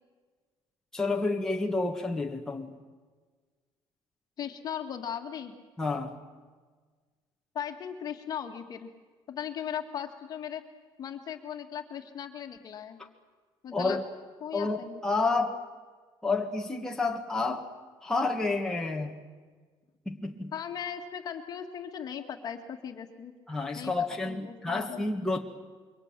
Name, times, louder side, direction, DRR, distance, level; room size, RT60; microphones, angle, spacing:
voice 1, 0.9-2.7 5.8-6.2 13.7-14.0 14.5-15.6 16.2-17.7 18.0-19.2 20.1-20.5 23.5-25.4, left 3 dB, 5° left, 0 dB, 1.6 m, -29 dB
voice 2, 4.4-5.6 7.5-8.9 9.3-10.6 11.0-13.0 13.6-14.0 14.4-15.0 20.5-23.3 23.7-25.1, left 8 dB, 40° left, 6 dB, 1.9 m, -38 dB
27.0 x 23.5 x 7.5 m, 1.5 s
cardioid pair, 165°, 10 cm